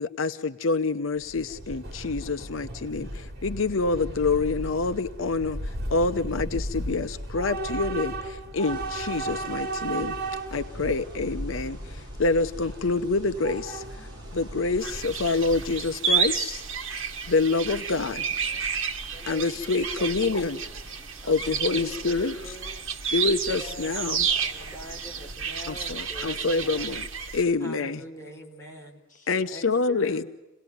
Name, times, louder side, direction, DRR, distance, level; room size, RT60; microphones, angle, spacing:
voice 1, 0.0-10.1 10.5-13.8 14.3-16.6 17.3-18.3 19.3-20.6 21.3-22.5 23.1-24.3 25.7-27.0 27.3-28.0 29.3-30.2, left 3 dB, 85° left, 11 dB, 0.8 m, -27 dB
Train / Subway metro underground, 1.2-16.0, right 2 dB, 55° right, 2.9 m, -35 dB
sound 1, 8.6-25.4, right 1 dB, 25° right, 6.9 m, -52 dB
sound 2, 14.8-27.4, right 6 dB, 75° right, 1.6 m, -31 dB
voice 2, 15.1-16.0 16.3-17.0 17.8-18.7 20.5-22.2 23.5-23.8 24.1-26.9 27.8-28.2 29.1-29.7, left 1 dB, 40° left, 1 dB, 2.5 m, -57 dB
voice 3, 19.1-20.8 21.2-22.1 22.4-22.8 23.4-24.0 24.4-26.9 27.6-29.0 29.5-30.3, equal, 15° left, 0 dB, 3.9 m, -43 dB
27.5 x 18.0 x 9.4 m, 1.0 s
head